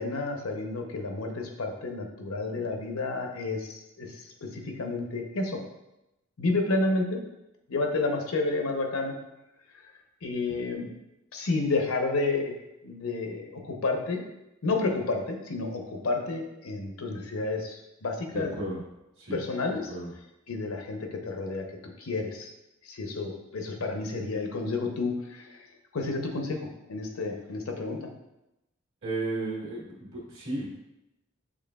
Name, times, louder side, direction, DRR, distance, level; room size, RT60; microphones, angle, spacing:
voice 1, 0.0-5.6 6.4-7.2 7.7-9.2 10.2-10.9 11.3-12.6 12.8-14.2 14.6-18.6 19.3-19.9 20.5-21.7 22.0-22.5 22.8-25.6 25.9-28.0, left 3 dB, 90° left, 3 dB, 0.7 m, -30 dB
voice 2, 18.3-18.8 19.2-19.4 19.9-20.1 29.0-30.7, right 2 dB, 65° right, -5 dB, 1.4 m, -33 dB
6.2 x 3.3 x 2.3 m, 0.91 s
head